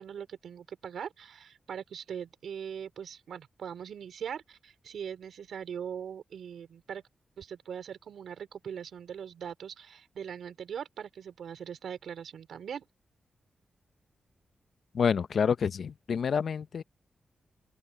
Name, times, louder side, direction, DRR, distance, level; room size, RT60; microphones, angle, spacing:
voice 1, 0.0-7.0 7.4-12.8, right 8 dB, 85° right, 4.6 m, -41 dB
voice 2, 14.9-16.8, left 6 dB, 70° left, 0.9 m, -28 dB
open air
cardioid pair, 80°, 0 cm